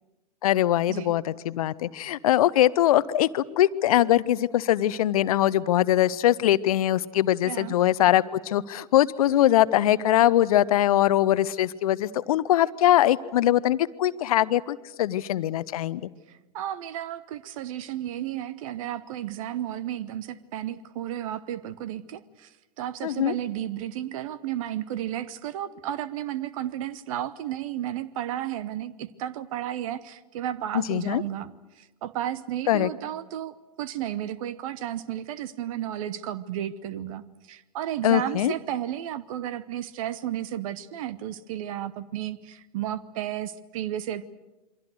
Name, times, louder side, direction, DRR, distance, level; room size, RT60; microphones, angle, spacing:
voice 1, 0.4-16.1 23.0-23.3 30.7-31.2 32.7-32.9 38.0-38.5, left 13 dB, 60° left, 17 dB, 0.8 m, -22 dB
voice 2, 7.4-7.7 16.3-22.5 22.8-44.3, right 11 dB, 55° right, 18 dB, 1.0 m, -33 dB
28.0 x 23.5 x 6.6 m, 1.1 s
figure-of-eight pair, 85°, 20 cm